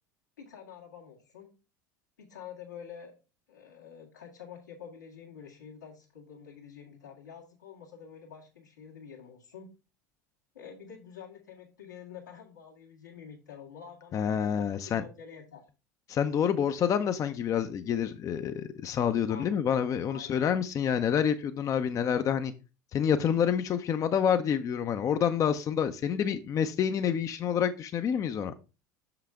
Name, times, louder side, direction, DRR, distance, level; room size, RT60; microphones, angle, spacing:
voice 1, 0.4-1.5 2.2-3.1 3.5-9.7 10.5-14.3 14.5-15.6 19.3-19.7 20.1-20.4, left 7 dB, 85° left, 1.9 m, -48 dB
voice 2, 14.1-15.0 16.1-22.5 22.9-28.5, left 8 dB, 35° left, 0.6 m, -28 dB
6.5 x 5.8 x 3.5 m
figure-of-eight pair, 75°, 9 cm